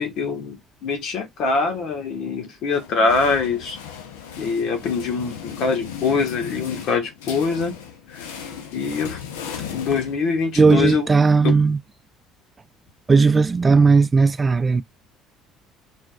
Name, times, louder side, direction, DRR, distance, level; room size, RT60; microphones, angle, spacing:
voice 1, 0.0-3.8 4.4-7.7 8.1-8.3 8.7-9.2 9.7-11.1 11.4-11.6, left 4 dB, 65° left, 1.6 m, -24 dB
sound 1, 2.7-10.6, left 8 dB, 85° left, 0.8 m, -36 dB
voice 2, 10.6-11.8 13.1-14.8, right 4 dB, 25° right, 0.3 m, -16 dB
4.9 x 3.7 x 2.4 m
hypercardioid pair, 70°, 0 cm